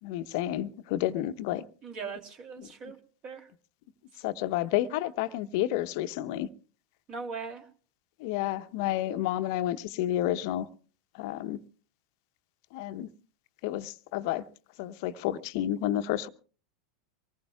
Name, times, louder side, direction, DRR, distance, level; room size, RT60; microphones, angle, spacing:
voice 1, 0.0-1.6 2.6-2.7 4.2-6.5 8.2-10.7 11.1-11.6 12.7-13.1 13.6-14.4 14.8-16.3, left 13 dB, 55° left, 12 dB, 0.8 m, -30 dB
voice 2, 1.8-3.0 3.2-3.5 4.1-4.2 7.1-7.7, right 5 dB, 40° right, 5 dB, 2.6 m, -40 dB
24.0 x 19.0 x 2.3 m, 0.39 s
figure-of-eight pair, 85°, 2 cm